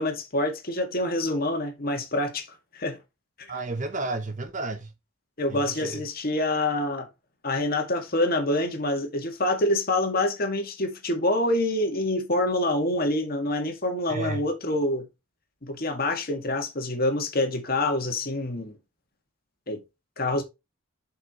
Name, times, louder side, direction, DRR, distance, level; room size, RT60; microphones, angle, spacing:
voice 1, 0.0-2.5 2.7-3.0 5.4-7.1 7.4-15.1 15.6-18.7 19.7-19.8 20.2-20.4, left 1 dB, 45° left, 1.9 m, -26 dB
voice 2, 3.5-4.9 5.5-6.0 14.1-14.4, right 2 dB, 35° right, 0.9 m, -32 dB
7.4 x 5.7 x 3.0 m
head